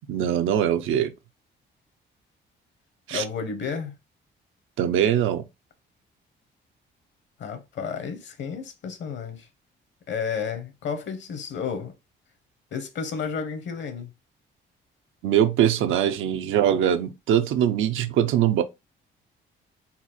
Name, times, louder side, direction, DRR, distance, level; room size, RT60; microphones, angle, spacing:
voice 1, 0.1-1.1 3.1-3.2 4.8-5.4 15.2-18.6, right 10 dB, 80° right, 0.6 m, -22 dB
voice 2, 3.1-3.9 7.4-9.5 10.1-11.9 12.7-14.1, left 6 dB, 65° left, 1.2 m, -32 dB
4.3 x 2.4 x 4.3 m
cardioid pair, 90°, 20 cm